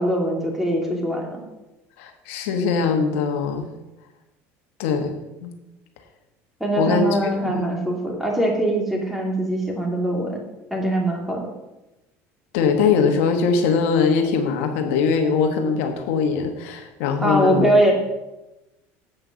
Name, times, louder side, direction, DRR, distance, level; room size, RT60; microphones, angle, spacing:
voice 1, 0.0-1.4 6.6-10.4 10.7-11.5 17.2-17.9, right 1 dB, 5° right, 0 dB, 2.6 m, -22 dB
voice 2, 2.0-3.7 4.8-5.5 6.8-7.1 7.4-7.7 12.5-17.7, left 5 dB, 85° left, 5 dB, 1.3 m, -21 dB
7.9 x 6.0 x 7.0 m, 0.99 s
supercardioid pair, 100°, 7 cm